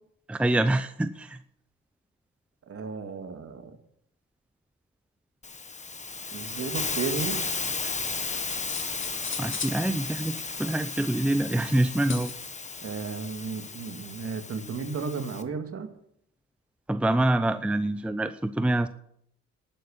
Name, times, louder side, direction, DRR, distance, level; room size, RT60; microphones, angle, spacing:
voice 1, 0.3-1.4 9.4-12.3 16.9-18.9, right 1 dB, 5° right, 11 dB, 0.7 m, -26 dB
voice 2, 2.7-3.8 6.3-7.4 12.8-15.9, right 5 dB, 50° right, 6 dB, 2.3 m, -34 dB
Hiss, 5.4-15.4, left 4 dB, 25° left, 1.4 m, -34 dB
sound 1, 8.5-9.8 11.9-12.5, left 5 dB, 40° left, 1.9 m, -37 dB
11.5 x 9.6 x 8.7 m, 0.71 s
cardioid pair, 90°, 30 cm